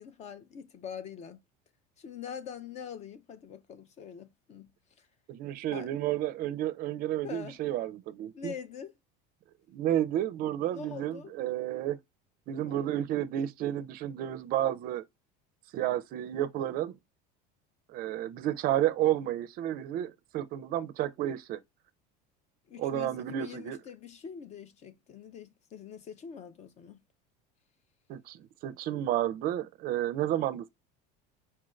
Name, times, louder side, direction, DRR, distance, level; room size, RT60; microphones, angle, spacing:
voice 1, 0.0-1.4 2.0-4.7 5.0-5.1 5.7-5.9 7.2-7.6 8.3-8.9 10.7-11.3 12.6-12.8 22.7-27.0, left 7 dB, 35° left, 0.4 m, -44 dB
voice 2, 5.3-8.5 9.7-12.0 12.5-15.0 15.7-17.0 17.9-21.6 22.8-23.8 28.1-30.7, right 12 dB, 45° right, 0.4 m, -31 dB
4.5 x 2.4 x 3.1 m
cardioid pair, 140°, 20 cm